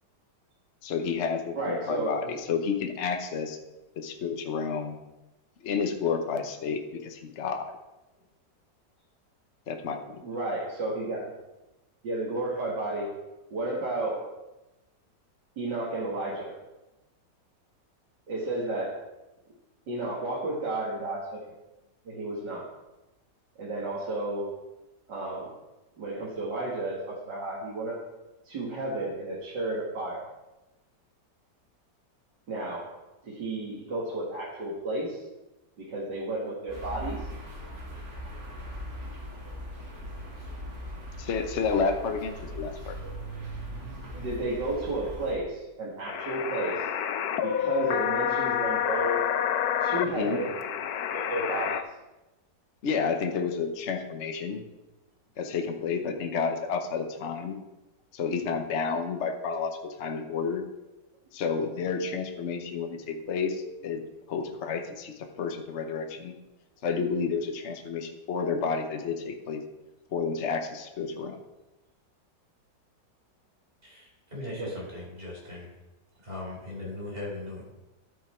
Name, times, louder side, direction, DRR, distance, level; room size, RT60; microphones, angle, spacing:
voice 1, 0.8-3.6 4.0-5.0 5.6-7.7 9.7-10.2 41.2-43.0 50.0-50.4 52.8-54.6 55.4-57.6 58.1-60.6 61.3-64.0 64.3-66.3 66.8-69.6 70.1-71.4, left 5 dB, 45° left, 5 dB, 1.1 m, -30 dB
voice 2, 1.6-2.4 10.2-11.3 12.0-13.1 13.5-14.3 15.6-16.6 18.3-19.0 19.9-21.4 22.1-22.7 23.6-24.5 25.1-25.5 26.0-28.0 28.4-30.3 32.5-32.9 33.2-35.2 35.8-37.3 44.1-46.8 47.4-49.3 49.8-50.6 51.1-51.8 74.6-74.7, right 2 dB, 75° right, -6 dB, 2.6 m, -32 dB
sound 1, 36.7-45.3, equal, 55° right, 3.2 m, -39 dB
sound 2, 46.1-51.8, left 9 dB, 70° left, 1.1 m, -29 dB
voice 3, 73.8-75.7 76.2-77.6, left 2 dB, 30° right, -3 dB, 4.0 m, -39 dB
12.5 x 7.0 x 4.4 m, 1.0 s
omnidirectional pair, 1.9 m